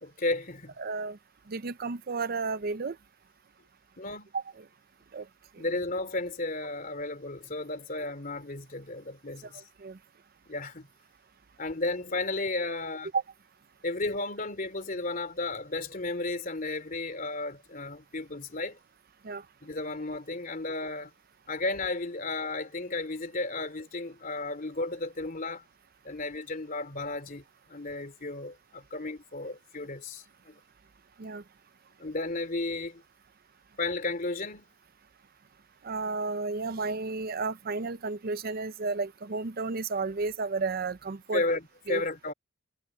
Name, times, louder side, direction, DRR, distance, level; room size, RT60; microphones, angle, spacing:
voice 1, 0.0-0.7 4.0-4.3 5.6-9.6 10.5-10.9 11.6-13.1 13.8-18.8 19.6-21.1 21.5-25.6 26.0-27.4 27.7-30.6 32.0-33.0 33.8-34.7 41.3-42.3, left 2 dB, 45° left, 2.9 m, -33 dB
voice 2, 0.8-1.2 1.5-3.0 4.3-4.6 5.1-5.3 5.5-5.6 9.5-10.0 13.1-13.2 19.2-19.4 31.2-31.4 35.8-41.4 41.9-42.0, right 4 dB, 50° right, 0.6 m, -32 dB
head